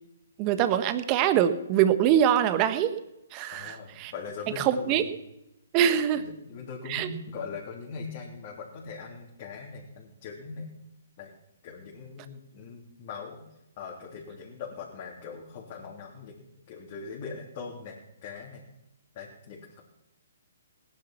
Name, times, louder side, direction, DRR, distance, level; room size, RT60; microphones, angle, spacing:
voice 1, 0.4-2.9 3.3-4.1 4.6-5.0 5.7-6.2 6.9-7.1, right 10 dB, 30° right, 10 dB, 1.3 m, -24 dB
voice 2, 3.5-5.1 6.1-10.7 11.2-11.3 11.6-13.4 13.8-18.6 19.1-19.8, left 5 dB, 40° left, -3 dB, 3.4 m, -41 dB
18.5 x 10.5 x 5.9 m, 0.88 s
figure-of-eight pair, 135°, 0 cm